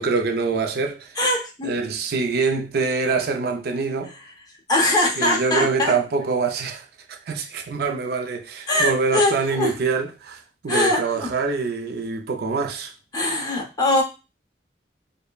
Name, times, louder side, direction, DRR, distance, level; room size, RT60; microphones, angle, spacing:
voice 1, 0.0-1.1 1.6-4.1 5.2-12.9, right 4 dB, 55° right, 0.4 m, -25 dB
voice 2, 1.2-1.7 4.1-4.2 4.7-5.9 8.7-9.7 10.7-11.3 13.1-14.0, left 1 dB, 20° left, 0.8 m, -22 dB
4.9 x 2.1 x 2.3 m
head